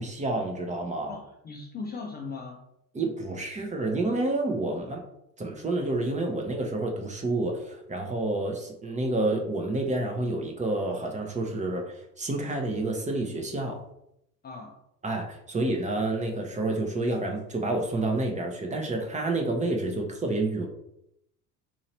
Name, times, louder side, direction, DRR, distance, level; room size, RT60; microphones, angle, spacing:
voice 1, 0.0-1.1 2.9-5.0 5.4-13.8 15.0-20.7, right 2 dB, 15° right, 2 dB, 0.7 m, -29 dB
voice 2, 1.1-2.6 14.4-14.8, left 4 dB, 20° left, 1 dB, 0.4 m, -38 dB
4.2 x 2.8 x 2.9 m, 0.79 s
figure-of-eight pair, 65°, 46 cm